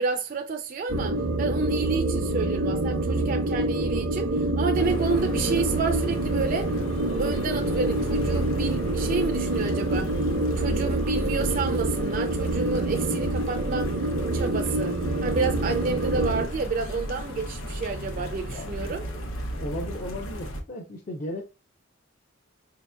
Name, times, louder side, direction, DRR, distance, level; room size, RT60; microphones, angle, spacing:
voice 1, 0.0-6.7 7.2-10.1 10.6-13.9 14.3-19.0, right 4 dB, 45° right, 0.4 m, -30 dB
sound 1, 0.9-16.5, right 2 dB, 90° right, 0.7 m, -26 dB
sound 2, 4.8-20.6, equal, 90° left, 0.8 m, -35 dB
voice 2, 18.5-19.3 19.5-21.4, left 1 dB, 40° left, 0.5 m, -36 dB
4.8 x 2.8 x 2.2 m
head